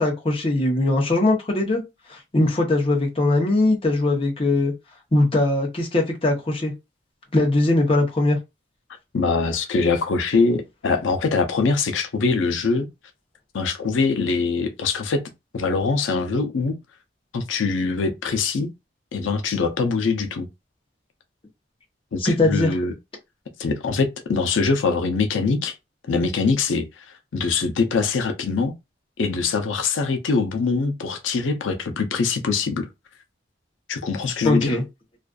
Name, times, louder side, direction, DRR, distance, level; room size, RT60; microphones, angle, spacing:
voice 1, 0.0-1.8 2.1-4.7 5.1-6.7 7.3-8.4 22.2-22.7 34.4-34.8, left 2 dB, 30° left, 0.7 m, -20 dB
voice 2, 9.1-12.9 13.5-15.2 15.5-16.8 17.3-18.7 19.1-20.5 22.1-22.9 23.6-25.7 26.1-27.0 27.3-28.7 29.2-32.9 33.9-34.8, left 4 dB, 90° left, 0.5 m, -23 dB
2.4 x 2.4 x 2.2 m
head